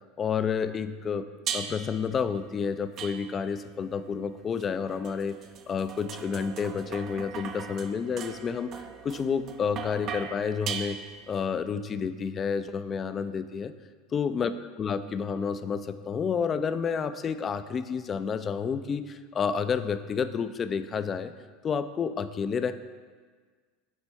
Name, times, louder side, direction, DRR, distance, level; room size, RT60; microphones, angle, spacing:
voice 1, 0.2-1.3 1.5-5.4 5.7-11.0 11.3-13.7 14.1-14.5 14.8-21.3 21.6-22.7, left 6 dB, 35° left, 12 dB, 0.4 m, -30 dB
sound 1, 1.5-2.0 3.0-3.6 4.6-11.4, right 7 dB, 45° right, 0.5 m, -39 dB
9.0 x 3.4 x 4.2 m, 1.5 s
hypercardioid pair, 85°, 0 cm